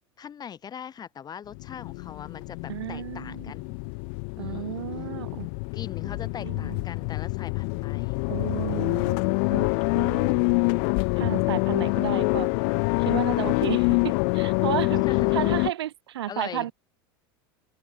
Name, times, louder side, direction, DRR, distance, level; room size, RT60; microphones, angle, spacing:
voice 1, 0.2-3.8 4.4-4.8 5.7-8.2 14.9-15.5 16.3-16.7, left 8 dB, 30° left, 4.9 m, -40 dB
sound 1, 1.5-15.7, left 40 dB or more, 60° left, 0.6 m, -26 dB
voice 2, 2.7-3.5 4.4-5.5 6.0-6.8 8.3-9.2 9.5-9.7 9.9-10.6 11.2-12.5 13.0-15.0 15.3-16.7, right 13 dB, 85° right, 3.5 m, -33 dB
open air
hypercardioid pair, 100°, 13 cm